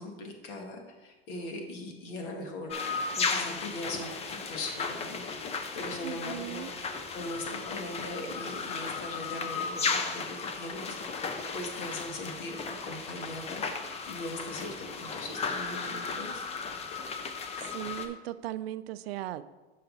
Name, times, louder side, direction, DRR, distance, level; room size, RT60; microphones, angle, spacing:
voice 1, 0.0-16.4, left 1 dB, 60° left, 2 dB, 1.7 m, -40 dB
sound 1, 2.7-18.1, left 4 dB, 20° left, 0.5 m, -35 dB
voice 2, 6.0-6.7 17.6-19.4, right 14 dB, 80° right, 14 dB, 0.5 m, -37 dB
6.7 x 5.7 x 4.0 m, 1.2 s
hypercardioid pair, 115°, 31 cm